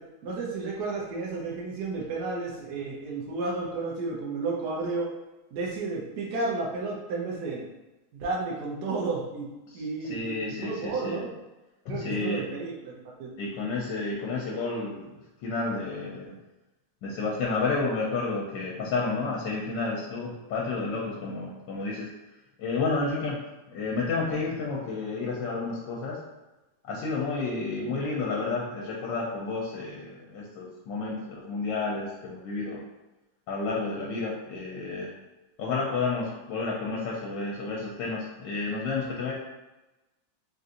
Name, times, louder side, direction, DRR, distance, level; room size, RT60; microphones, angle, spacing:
voice 1, 0.2-5.1 5.5-7.6 8.1-9.5 9.7-11.3 11.9-12.9 13.2-13.3, right 3 dB, 70° right, -3 dB, 1.2 m, -32 dB
voice 2, 9.7-11.2 11.8-12.5 13.4-15.1 15.4-16.3 17.0-22.1 22.6-23.4 23.7-26.2 26.9-32.8 33.5-35.1 35.6-39.3, left 3 dB, 85° left, -3 dB, 1.3 m, -31 dB
3.7 x 2.7 x 2.5 m, 1.1 s
omnidirectional pair, 1.9 m